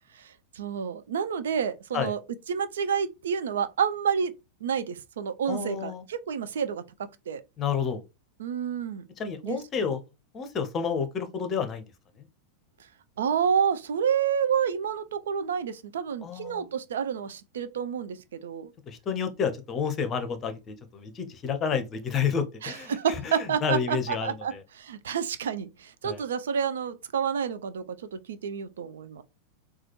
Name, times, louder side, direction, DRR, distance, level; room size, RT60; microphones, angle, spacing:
voice 1, 0.1-2.2 2.5-4.3 4.6-6.8 7.3-7.4 8.4-9.0 9.4-9.9 13.2-18.7 22.6-27.8 28.1-29.2, right 7 dB, 60° right, 0.3 m, -29 dB
voice 2, 5.5-6.0 7.6-8.0 9.2-10.0 10.3-11.8 16.2-16.7 18.9-22.9 23.2-23.3 23.6-24.3 26.0-26.2, left 6 dB, 25° left, 0.7 m, -30 dB
4.0 x 2.3 x 2.9 m
figure-of-eight pair, 90°, 0 cm